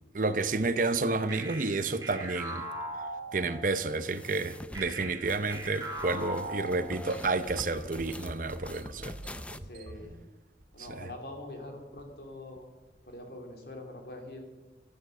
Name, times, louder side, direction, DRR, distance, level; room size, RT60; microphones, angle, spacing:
voice 1, 0.1-2.7 3.3-9.1 11.0-11.1, right 3 dB, 50° right, 12 dB, 0.8 m, -30 dB
sound 1, 1.3-3.8 4.7-7.3, right 2 dB, 20° right, 3.3 m, -39 dB
sound 2, 3.9-9.6, left 1 dB, 5° left, 0.5 m, -45 dB
sound 3, 6.9-10.1 10.6-11.1 11.4-11.6 12.0-12.3 12.9-13.1, right 1 dB, 85° right, 2.4 m, -47 dB
voice 2, 9.6-10.2 10.7-12.6 13.0-14.4, left 1 dB, 60° left, 3 dB, 3.0 m, -44 dB
14.5 x 13.0 x 6.6 m, 1.2 s
head